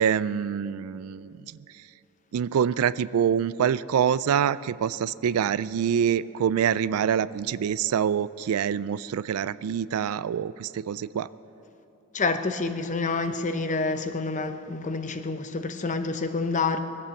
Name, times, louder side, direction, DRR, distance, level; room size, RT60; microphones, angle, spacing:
voice 1, 0.0-1.4 2.3-11.3, right 8 dB, 70° right, 0.3 m, -25 dB
voice 2, 12.1-16.8, left 3 dB, 35° left, 0.7 m, -28 dB
21.0 x 8.6 x 7.0 m
head